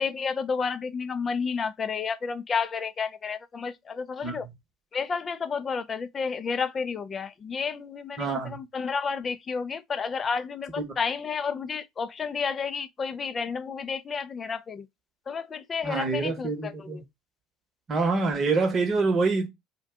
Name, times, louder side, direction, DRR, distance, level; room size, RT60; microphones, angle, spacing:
voice 1, 0.0-4.5 4.9-14.9 15.3-17.0, left 5 dB, 35° left, 0.3 m, -31 dB
voice 2, 8.2-8.6 15.8-17.0 17.9-19.5, right 3 dB, 40° right, 0.9 m, -26 dB
2.5 x 2.1 x 3.5 m
hypercardioid pair, 65°, 0 cm